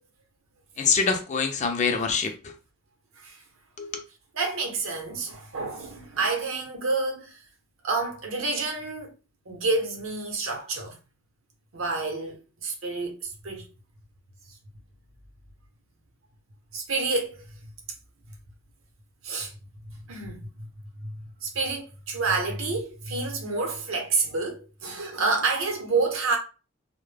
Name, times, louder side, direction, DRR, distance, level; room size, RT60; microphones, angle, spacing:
voice 1, 0.8-2.5 3.8-4.0, left 5 dB, 35° left, 0.4 m, -25 dB
voice 2, 4.3-7.4 7.8-9.1 9.5-10.9 11.7-13.7 16.7-17.4 19.2-19.5 20.1-20.7 21.0-21.1 21.4-26.4, right 3 dB, 75° right, 0.7 m, -29 dB
2.1 x 2.0 x 3.2 m
head